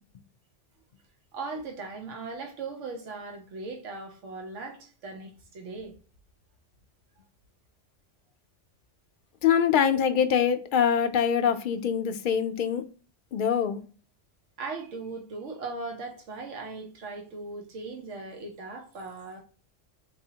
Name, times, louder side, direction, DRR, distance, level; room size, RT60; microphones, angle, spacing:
voice 1, 1.3-5.9 14.6-19.4, right 3 dB, 85° right, 1.2 m, -38 dB
voice 2, 9.4-12.8 13.3-13.8, left 8 dB, 60° left, 0.5 m, -24 dB
4.1 x 2.8 x 2.8 m
omnidirectional pair, 1.2 m